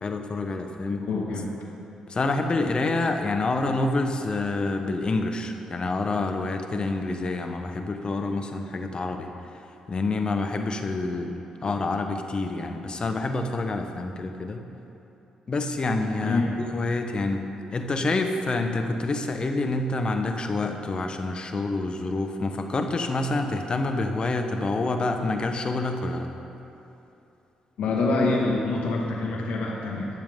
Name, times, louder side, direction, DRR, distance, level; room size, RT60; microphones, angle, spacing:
voice 1, 0.0-1.1 2.1-9.3 9.9-11.3 11.6-14.6 15.5-26.3, left 2 dB, 40° left, 5 dB, 1.2 m, -27 dB
voice 2, 1.0-1.5 16.2-16.5 27.8-30.1, left 3 dB, 75° left, -2 dB, 1.9 m, -25 dB
22.0 x 7.3 x 3.8 m, 2.9 s
supercardioid pair, 60°, 2 cm